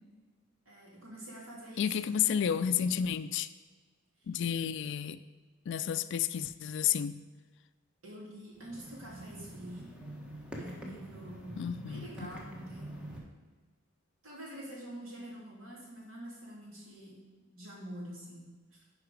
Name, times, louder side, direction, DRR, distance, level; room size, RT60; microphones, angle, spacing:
voice 1, 0.6-2.9 8.0-9.9 10.6-13.2 14.2-17.2 17.5-18.8, right 1 dB, 85° right, 2.9 m, -46 dB
voice 2, 1.8-3.5 4.3-5.2 5.7-7.2 11.6-12.1, left 8 dB, 60° left, 0.3 m, -31 dB
sound 1, 8.5-13.2, right 1 dB, 5° right, 1.2 m, -46 dB
10.5 x 4.8 x 5.0 m
head